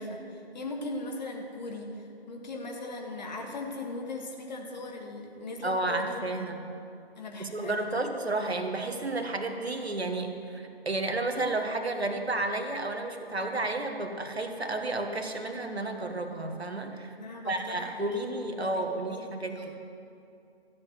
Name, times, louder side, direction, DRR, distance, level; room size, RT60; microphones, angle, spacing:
voice 1, 0.0-6.2 7.2-7.9 17.0-19.1 19.5-19.8, left 2 dB, 45° left, 1 dB, 2.0 m, -39 dB
voice 2, 5.6-6.6 7.4-17.1 17.5-19.7, right 2 dB, 75° right, 5 dB, 1.6 m, -32 dB
14.0 x 8.0 x 8.1 m, 2.6 s
figure-of-eight pair, 140°, 32 cm